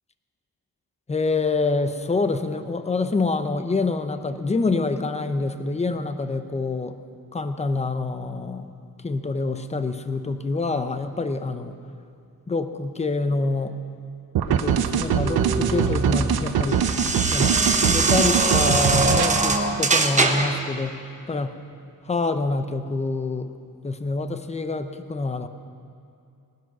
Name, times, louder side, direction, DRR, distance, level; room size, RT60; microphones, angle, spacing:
voice 1, 1.1-7.0 7.3-8.7 9.0-11.8 12.5-13.8 14.5-16.9 17.3-17.6 17.9-21.0 21.3-21.6 22.0-23.5 23.8-25.5, left 3 dB, 20° left, 10 dB, 0.7 m, -26 dB
sound 1, 14.4-19.4, right 8 dB, 85° right, 0.8 m, -23 dB
sound 2, 14.8-20.6, right 3 dB, 20° right, 1.0 m, -23 dB
18.5 x 10.5 x 6.1 m, 2.4 s
wide cardioid pair, 135°, 36 cm